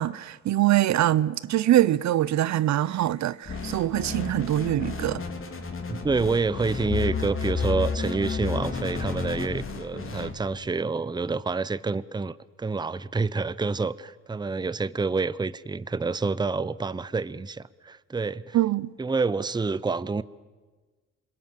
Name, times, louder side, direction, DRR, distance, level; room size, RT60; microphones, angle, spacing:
voice 1, 0.0-5.2 18.5-18.9, right 13 dB, 65° right, 0.7 m, -23 dB
sound 1, 3.5-10.3, left 5 dB, 45° left, 3.3 m, -31 dB
voice 2, 5.9-18.6 19.0-20.2, right 4 dB, 15° right, 0.7 m, -28 dB
28.0 x 22.0 x 7.7 m
cardioid pair, 90°, 30 cm